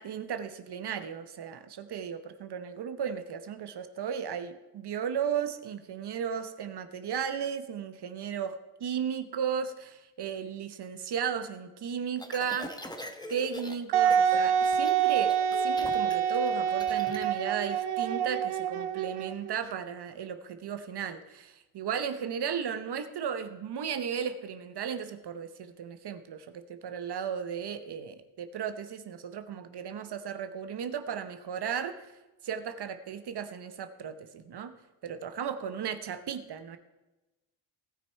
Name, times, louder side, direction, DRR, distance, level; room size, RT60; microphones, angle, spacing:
voice 1, 0.0-12.7 13.3-32.0 32.4-34.8 35.0-36.8, right 7 dB, 55° right, 10 dB, 1.0 m, -35 dB
sound 1, 12.2-13.7 14.1-14.4 14.6-17.2, left 1 dB, 10° left, 1.2 m, -41 dB
Wind instrument woodwind instrument, 13.9-19.5, right 8 dB, 80° right, 0.8 m, -27 dB
17.5 x 6.1 x 4.5 m, 1.0 s
cardioid pair, 105°, 49 cm